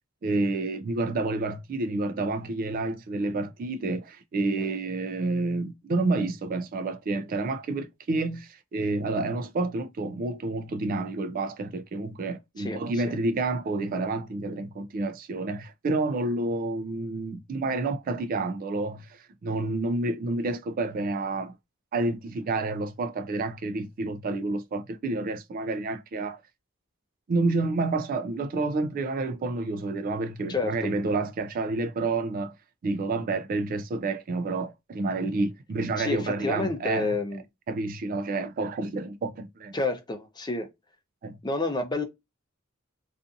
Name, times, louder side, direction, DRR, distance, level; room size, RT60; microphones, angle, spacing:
voice 1, 0.2-21.6 21.9-26.4 27.3-32.5 32.8-37.1 37.7-39.7 41.2-41.4, right 2 dB, 45° right, 0.3 m, -29 dB
voice 2, 12.6-13.2 30.5-30.7 36.0-37.4 39.7-40.7 41.4-42.0, left 3 dB, 20° left, 0.6 m, -29 dB
2.5 x 2.4 x 2.4 m
head